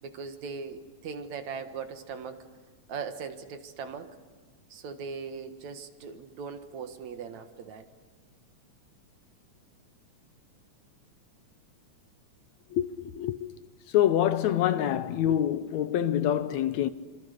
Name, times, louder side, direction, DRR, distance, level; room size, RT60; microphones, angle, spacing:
voice 1, 0.0-2.5 2.9-4.1 4.7-7.9, right 5 dB, 70° right, 2.9 m, -39 dB
voice 2, 12.7-13.5 13.9-16.9, left 11 dB, 75° left, 2.1 m, -26 dB
26.5 x 25.5 x 6.7 m
omnidirectional pair, 3.4 m